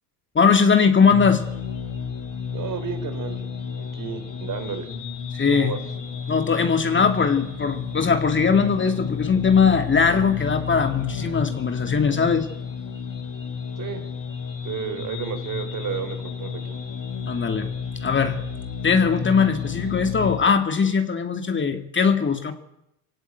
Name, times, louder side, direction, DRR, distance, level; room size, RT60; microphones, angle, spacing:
voice 1, 0.3-1.4 5.3-5.7 6.3-12.5 17.3-17.7 18.0-18.4 18.8-22.5, left 5 dB, 25° left, 6 dB, 2.3 m, -20 dB
sound 1, 1.1-20.4, left 6 dB, 40° left, 5.6 m, -31 dB
voice 2, 2.5-3.5 3.7-4.9 5.5-5.8 13.8-14.0 14.3-14.4 14.6-16.8, right 7 dB, 40° right, 9 dB, 3.9 m, -32 dB
23.0 x 17.5 x 9.1 m, 0.82 s
supercardioid pair, 90°, 49 cm